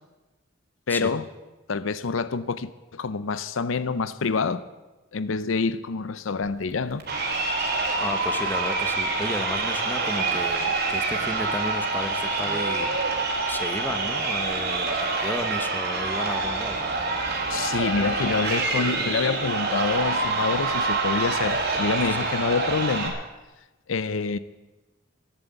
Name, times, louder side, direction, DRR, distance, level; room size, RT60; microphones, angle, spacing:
voice 1, 0.9-1.2 1.7-4.7 5.1-7.0 17.5-23.2 23.9-24.4, left 4 dB, 75° left, 0.6 m, -27 dB
Crowd, 7.0-23.1, right 3 dB, 50° right, 3.4 m, -26 dB
voice 2, 8.0-12.9 13.5-16.8 22.1-22.2, left 1 dB, 10° left, 1.0 m, -33 dB
14.0 x 11.5 x 8.1 m
head